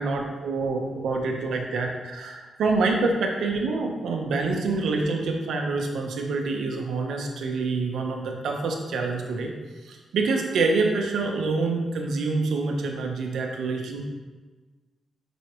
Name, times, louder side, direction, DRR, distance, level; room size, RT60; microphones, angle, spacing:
voice 1, 0.0-9.5 9.8-14.0, right 3 dB, 80° right, 2 dB, 1.1 m, -26 dB
8.1 x 5.4 x 3.1 m, 1.3 s
cardioid pair, 115°, 0 cm